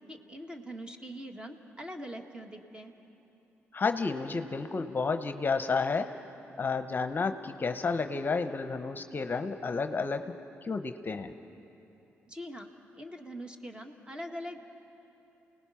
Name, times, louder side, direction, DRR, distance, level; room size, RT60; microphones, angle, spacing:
voice 1, 0.1-2.9 12.3-12.7 13.0-14.6, equal, 20° right, 4 dB, 1.9 m, -42 dB
voice 2, 3.7-6.1 6.6-10.2 10.6-11.3, left 4 dB, 40° left, 8 dB, 0.8 m, -31 dB
28.5 x 19.0 x 5.8 m, 2.9 s
supercardioid pair, 60°, 5 cm